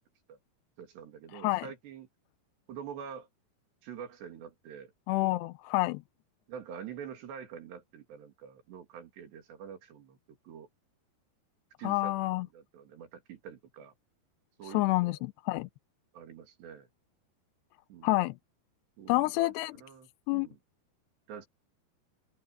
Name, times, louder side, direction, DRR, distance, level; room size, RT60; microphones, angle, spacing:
voice 1, 0.8-2.1 2.7-3.3 3.8-4.9 6.5-10.7 11.8-13.9 14.6-15.2 16.1-16.9 17.9-18.2 19.0-19.5 19.8-20.6 21.3-21.5, right 8 dB, 80° right, 5.3 m, -46 dB
voice 2, 5.1-6.0 11.8-12.5 14.7-15.7 18.0-18.3 19.1-19.8 20.3-20.5, left 20 dB, 90° left, 2.8 m, -28 dB
omnidirectional pair, 4.8 m